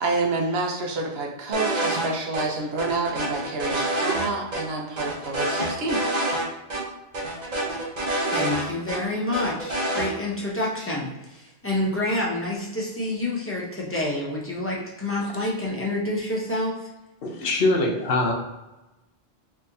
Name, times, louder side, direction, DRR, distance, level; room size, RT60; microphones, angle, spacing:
voice 1, 0.0-6.0, right 3 dB, 70° right, 0 dB, 1.0 m, -28 dB
sound 1, 1.5-2.1 2.3-2.4 2.8-4.3 4.5-4.6 5.0-6.4 6.7-6.8 7.1-9.0 9.3-10.1, right 1 dB, 45° right, 0.8 m, -27 dB
voice 2, 8.3-16.9, left 1 dB, 15° left, -4 dB, 0.6 m, -28 dB
voice 3, 17.2-18.3, left 2 dB, 60° left, 0 dB, 0.9 m, -23 dB
4.0 x 2.7 x 2.7 m, 1.0 s
omnidirectional pair, 1.1 m